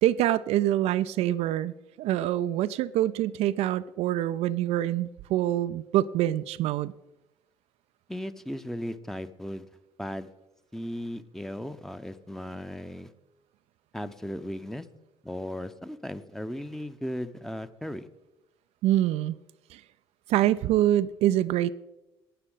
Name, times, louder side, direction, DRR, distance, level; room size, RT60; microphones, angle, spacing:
voice 1, 0.0-6.9 18.8-19.4 19.7-19.8 20.3-21.7, right 13 dB, 60° right, 12 dB, 0.4 m, -25 dB
voice 2, 8.1-9.7 10.0-10.3 10.7-13.1 13.9-14.9 15.2-18.1, equal, 5° left, 11 dB, 0.8 m, -36 dB
17.0 x 9.7 x 3.9 m, 0.98 s
figure-of-eight pair, 50°, 12 cm